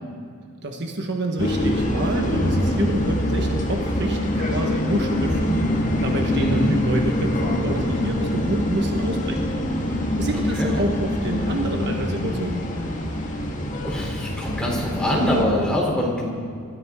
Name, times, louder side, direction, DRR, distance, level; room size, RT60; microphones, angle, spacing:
voice 1, 0.6-12.6, right 1 dB, 50° right, 2 dB, 1.3 m, -28 dB
sound 1, 1.4-15.4, left 1 dB, 35° left, 1.8 m, -24 dB
voice 2, 6.3-6.7 10.3-10.8 13.8-16.3, equal, 5° left, -4 dB, 3.3 m, -24 dB
25.0 x 13.5 x 3.6 m, 2.3 s
head